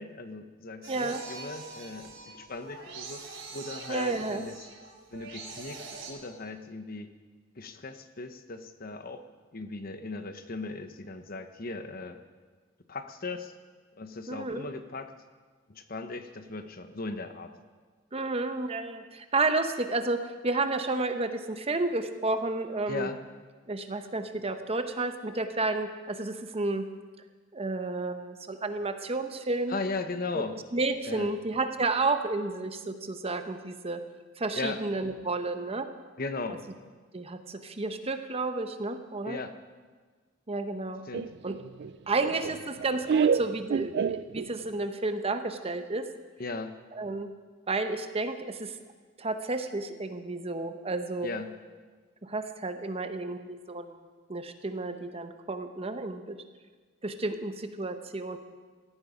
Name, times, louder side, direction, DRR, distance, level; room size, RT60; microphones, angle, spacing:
voice 1, 0.0-3.2 3.5-4.7 5.1-7.1 7.5-9.3 9.5-12.2 12.9-13.5 14.0-15.1 15.7-17.5 22.9-23.2 29.7-30.6 31.1-31.3 34.5-34.8 36.2-36.6 39.2-39.5 41.0-41.3 46.4-46.8 51.2-51.5, left 3 dB, 50° left, 9 dB, 1.0 m, -37 dB
sound 1, 0.8-6.1, right 3 dB, 80° right, 3.5 m, -44 dB
voice 2, 0.9-1.2 3.9-4.4 14.3-14.7 18.1-23.1 23.7-26.9 27.5-29.8 30.3-30.4 30.7-34.0 34.4-35.9 37.1-39.4 40.5-41.0 41.4-41.6 42.1-46.1 46.9-47.3 47.7-48.8 49.2-51.3 52.2-54.0 54.3-56.4 57.0-58.4, right 3 dB, 30° right, 8 dB, 0.9 m, -31 dB
Laughter, 41.1-44.8, right 6 dB, 60° right, 0.4 m, -29 dB
17.5 x 13.5 x 5.1 m, 1.4 s
head